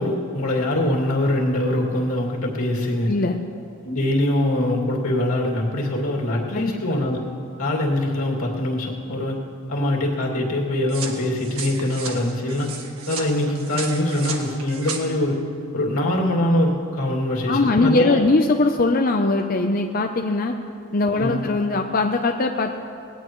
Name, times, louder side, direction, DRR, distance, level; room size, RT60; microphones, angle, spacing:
voice 1, 0.0-3.1 3.8-7.2 7.6-9.4 9.7-12.7 13.1-15.4 15.7-18.2 21.1-21.5, left 1 dB, 85° left, -2 dB, 2.5 m, -23 dB
voice 2, 3.1-3.4 6.5-6.8 17.5-20.5 20.9-22.8, left 2 dB, 40° left, 4 dB, 0.6 m, -20 dB
sound 1, 10.9-15.0, right 5 dB, 85° right, 1.6 m, -34 dB
20.5 x 17.5 x 3.1 m, 2.5 s
head